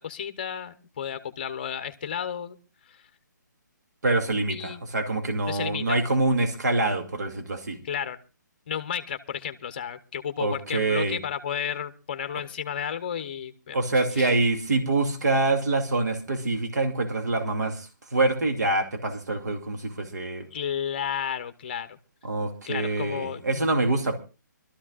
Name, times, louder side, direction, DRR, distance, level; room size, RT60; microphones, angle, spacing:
voice 1, 0.0-2.6 2.9-3.1 4.5-4.8 5.5-6.0 7.8-8.2 8.7-14.3 20.5-22.0 22.7-23.7, left 8 dB, 30° left, 11 dB, 0.8 m, -33 dB
voice 2, 4.0-7.8 10.4-11.2 13.7-20.5 22.2-24.2, right 2 dB, 60° right, 5 dB, 2.5 m, -25 dB
25.0 x 13.0 x 2.4 m, 0.30 s
hypercardioid pair, 175°, 10 cm